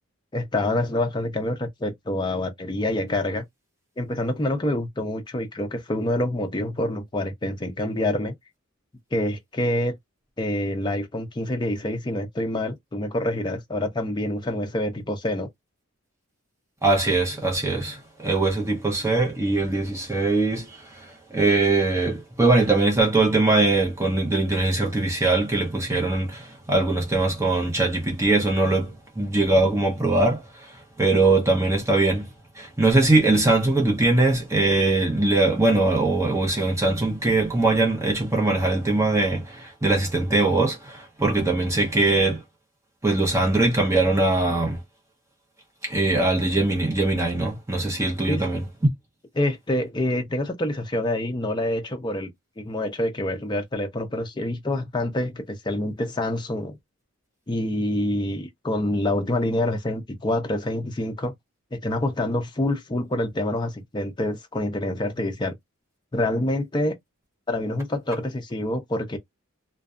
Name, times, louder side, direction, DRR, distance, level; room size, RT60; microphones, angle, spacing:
voice 1, 0.3-3.4 4.0-8.3 9.1-9.9 10.4-15.5 48.3-48.4 49.4-52.3 52.6-56.8 57.5-61.3 61.7-65.5 66.1-67.0 67.5-69.2, left 1 dB, 20° left, 0.4 m, -26 dB
voice 2, 16.8-21.0 21.3-30.7 31.0-32.3 32.5-42.4 43.0-44.8 45.8-48.6, right 2 dB, 15° right, 0.6 m, -21 dB
2.5 x 2.2 x 2.3 m
head